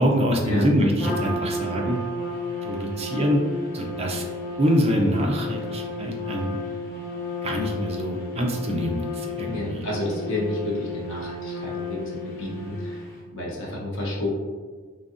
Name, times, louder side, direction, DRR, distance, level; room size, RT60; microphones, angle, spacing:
voice 1, 0.0-2.0 2.6-3.4 3.7-4.3 4.6-6.6 7.4-9.8, equal, 30° right, 0 dB, 0.5 m, -24 dB
Trumpet, 1.0-13.1, left 2 dB, 15° left, 1.2 m, -33 dB
voice 2, 9.5-13.0 13.3-14.3, left 1 dB, 70° left, -4 dB, 1.0 m, -30 dB
3.8 x 3.4 x 2.6 m, 1.5 s
head